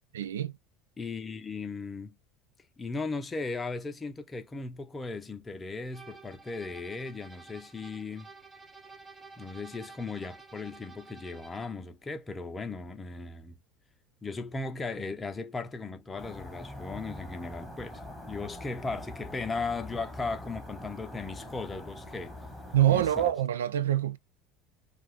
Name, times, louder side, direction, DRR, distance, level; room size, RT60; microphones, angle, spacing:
voice 1, 0.1-0.5 22.7-24.2, right 12 dB, 85° right, 0.3 m, -25 dB
voice 2, 1.0-2.2 2.8-8.3 9.4-13.6 14.2-22.4 22.9-23.3, left 3 dB, 20° left, 0.6 m, -37 dB
sound 1, 5.9-11.9, right 4 dB, 20° right, 0.7 m, -51 dB
sound 2, 16.2-23.3, left 1 dB, 5° right, 1.3 m, -44 dB
2.4 x 2.3 x 3.3 m
hypercardioid pair, 80°, 0 cm